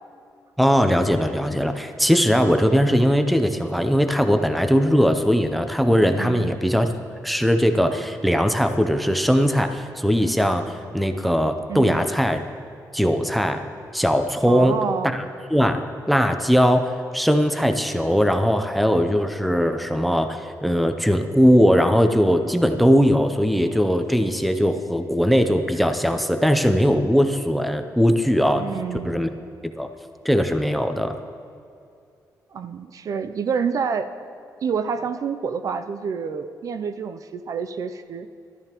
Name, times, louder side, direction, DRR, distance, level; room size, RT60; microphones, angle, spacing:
voice 1, 0.6-6.9 7.2-12.4 12.9-13.6 13.9-14.8 15.1-15.2 15.5-28.6 29.0-29.3 29.8-29.9 30.2-31.2, equal, ahead, 7 dB, 0.5 m, -20 dB
voice 2, 6.2-6.5 11.7-12.1 14.5-15.2 28.6-29.2 32.5-34.1 34.6-38.3, right 6 dB, 55° right, 10 dB, 0.4 m, -28 dB
13.0 x 13.0 x 3.0 m, 2.4 s
wide cardioid pair, 145°, 7 cm